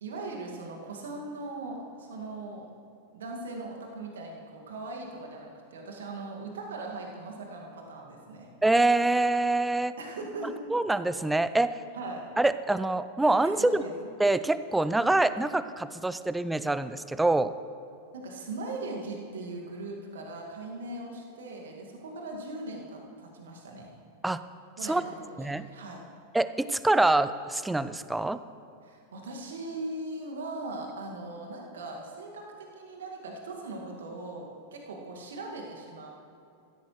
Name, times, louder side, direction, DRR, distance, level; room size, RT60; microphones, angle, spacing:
voice 1, 0.0-2.7 3.1-8.5 10.0-10.5 11.9-12.2 13.4-13.9 18.1-23.9 24.8-26.0 28.8-36.1, right 2 dB, 65° right, 0 dB, 1.9 m, -39 dB
voice 2, 8.6-9.9 10.7-11.8 12.4-13.8 14.2-17.5 24.2-24.4 24.9-25.0 25.4-25.7 26.3-28.4, right 2 dB, 5° right, 14 dB, 0.4 m, -25 dB
16.0 x 13.5 x 3.1 m, 2.6 s
figure-of-eight pair, 90°, 0 cm